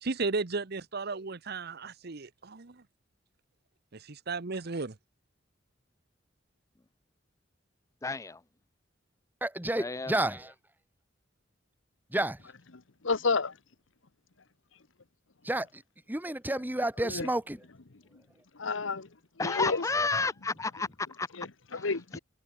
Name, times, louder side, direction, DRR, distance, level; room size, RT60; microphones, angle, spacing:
voice 1, 0.0-2.8 3.9-4.9, right 3 dB, 55° right, 1.0 m, -34 dB
voice 2, 8.0-8.4 9.8-10.1 19.4-21.3 21.7-21.9, left 3 dB, 15° left, 0.5 m, -31 dB
voice 3, 9.4-10.5 12.1-12.4 15.4-15.8 16.1-17.6, right 1 dB, 10° right, 1.4 m, -30 dB
voice 4, 13.0-13.5 17.0-17.3 18.6-19.1 19.4-19.8 21.4-22.2, left 4 dB, 80° left, 1.2 m, -30 dB
head